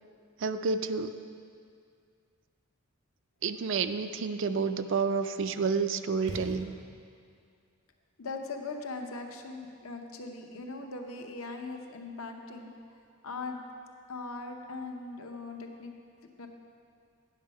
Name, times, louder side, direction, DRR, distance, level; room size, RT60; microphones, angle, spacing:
voice 1, 0.4-1.1 3.4-6.7, right 5 dB, 55° right, 10 dB, 0.4 m, -29 dB
sound 1, 6.2-7.2, right 1 dB, 75° right, 0.9 m, -42 dB
voice 2, 8.2-12.7 13.2-13.6 14.1-15.9 16.4-16.5, left 3 dB, 70° left, 3 dB, 0.8 m, -40 dB
9.4 x 6.3 x 5.4 m, 2.3 s
head